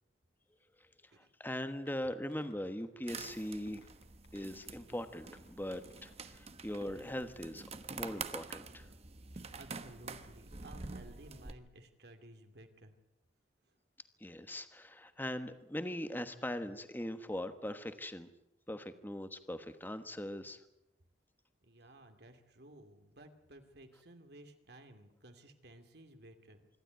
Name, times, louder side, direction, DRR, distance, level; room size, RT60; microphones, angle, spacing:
voice 1, 1.2-3.8 4.3-7.7 7.9-8.9 14.2-18.3 18.7-20.6, left 1 dB, 10° left, 10 dB, 1.3 m, -41 dB
sound 1, 1.9-4.3 4.6-6.4, left 3 dB, 75° left, 4.9 m, -66 dB
sound 2, 3.1-11.5, right 4 dB, 35° right, 1.2 m, -47 dB
voice 2, 9.6-13.0 21.6-26.7, right 1 dB, 65° right, 5 dB, 2.6 m, -56 dB
25.5 x 12.5 x 9.4 m, 0.88 s
head